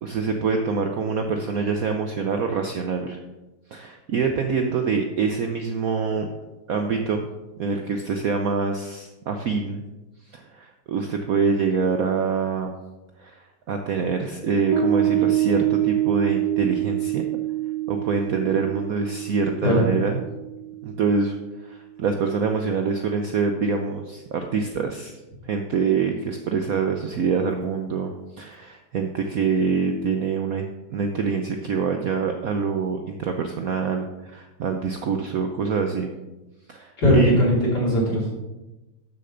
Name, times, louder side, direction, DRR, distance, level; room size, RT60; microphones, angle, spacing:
voice 1, 0.0-3.2 3.7-6.3 6.7-7.3 7.6-9.8 10.3-12.7 13.2-17.3 17.9-20.2 20.8-25.2 25.4-36.1 36.7-37.3, right 5 dB, 85° right, 5 dB, 0.7 m, -25 dB
Piano, 14.7-21.5, right 12 dB, 55° right, 1.2 m, -25 dB
voice 2, 37.0-38.3, left 1 dB, 50° left, -5 dB, 3.7 m, -19 dB
12.0 x 6.7 x 3.9 m, 1.1 s
omnidirectional pair, 2.4 m